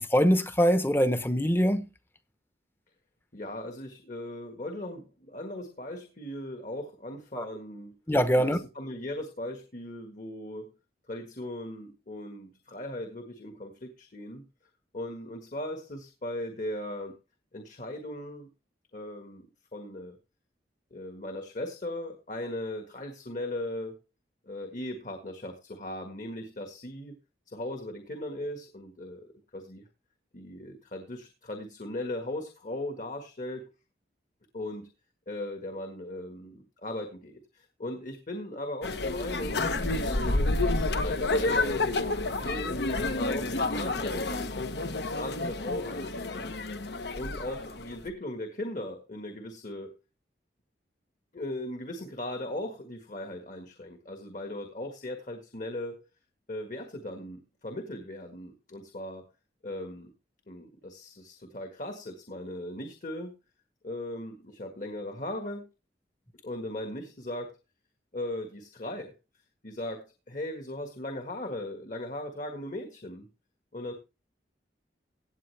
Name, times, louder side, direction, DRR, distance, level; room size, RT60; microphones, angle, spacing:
voice 1, 0.0-1.9 7.3-7.4 8.1-8.6, equal, 15° left, 0.9 m, -23 dB
voice 2, 3.3-8.0 8.4-10.7 11.1-14.4 14.9-17.2 17.5-18.5 18.9-19.5 19.7-20.2 20.9-24.0 24.4-27.1 27.5-29.9 30.3-33.7 34.5-34.9 35.3-40.2 40.6-42.0 42.4-44.6 45.1-46.6 47.1-49.9 51.3-56.0 56.5-59.3 59.6-60.1 60.5-63.3 63.8-65.7 66.4-67.6 68.1-69.1 69.6-73.3 73.7-73.9, left 1 dB, 45° left, 1.6 m, -38 dB
sound 1, 38.8-48.1, left 2 dB, 70° left, 1.1 m, -29 dB
16.5 x 8.6 x 3.4 m
head